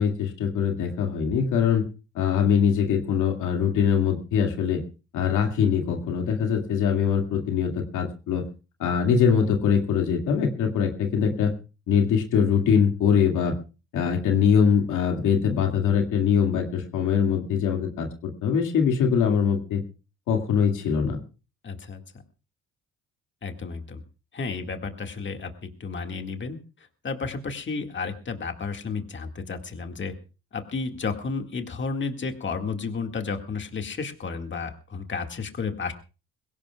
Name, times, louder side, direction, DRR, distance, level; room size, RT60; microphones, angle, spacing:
voice 1, 0.0-1.8 2.1-4.8 5.1-8.5 8.8-11.5 11.9-13.6 13.9-19.8 20.3-21.2, left 7 dB, 85° left, 3 dB, 2.3 m, -23 dB
voice 2, 21.6-22.0 23.4-24.0 24.3-26.6 27.0-30.1 30.5-35.9, left 4 dB, 40° left, 5 dB, 2.0 m, -32 dB
22.0 x 17.0 x 2.4 m, 0.33 s
cardioid pair, 90°, 30 cm